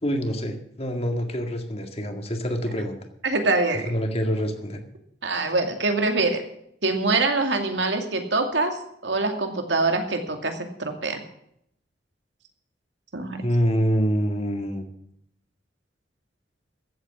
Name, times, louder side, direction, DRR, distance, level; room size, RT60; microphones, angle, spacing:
voice 1, 0.0-3.0 3.8-4.8 13.4-14.8, equal, 35° left, 5 dB, 2.0 m, -26 dB
voice 2, 3.2-3.9 5.2-6.4 6.8-11.2 13.1-13.4, right 3 dB, 85° right, 5 dB, 2.4 m, -24 dB
14.5 x 8.2 x 7.1 m, 0.71 s
head